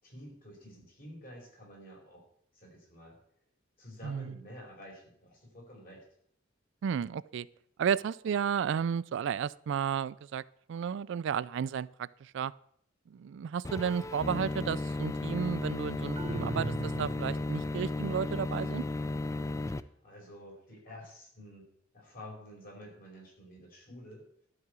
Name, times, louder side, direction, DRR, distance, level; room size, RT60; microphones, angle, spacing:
voice 1, 0.0-2.2 2.5-3.2 3.8-6.0 19.7-24.2, left 1 dB, 50° left, -1 dB, 5.0 m, -50 dB
voice 2, 4.0-4.3 6.8-7.5 7.8-10.4 10.7-12.5 13.1-18.8, right 7 dB, 65° right, 18 dB, 0.3 m, -33 dB
sound 1, 13.6-19.8, left 2 dB, 15° left, 0.4 m, -34 dB
sound 2, 16.2-17.6, right 3 dB, 30° right, 0.9 m, -38 dB
12.5 x 4.9 x 8.1 m, 0.67 s
head